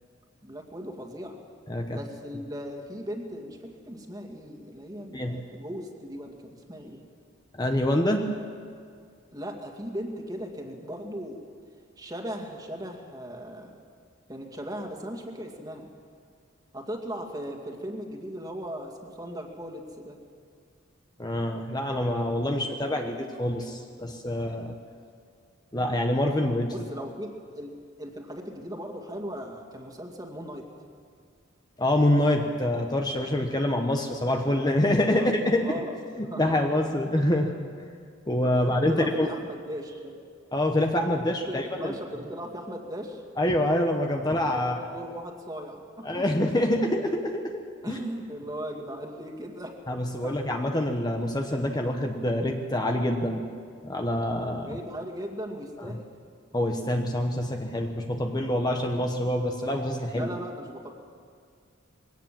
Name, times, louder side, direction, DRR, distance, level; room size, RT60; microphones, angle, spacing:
voice 1, 0.4-1.4 1.9-7.0 9.3-11.4 12.0-13.8 14.3-15.9 16.7-20.2 26.6-30.7 35.2-35.3 35.6-35.9 36.3-36.6 38.5-40.2 41.5-43.2 44.6-46.3 47.8-49.8 50.2-50.4 54.6-56.1 60.1-60.9, equal, 20° right, 2 dB, 2.3 m, -38 dB
voice 2, 1.7-2.0 5.1-5.4 7.5-8.3 21.2-24.8 25.7-26.7 31.8-35.7 36.2-37.9 38.3-39.3 40.5-42.0 43.4-44.8 46.0-47.6 47.9-48.0 49.9-53.4 53.8-54.8 55.9-56.0 56.5-60.3, left 1 dB, 20° left, 3 dB, 1.1 m, -26 dB
21.5 x 18.0 x 7.6 m, 2.2 s
head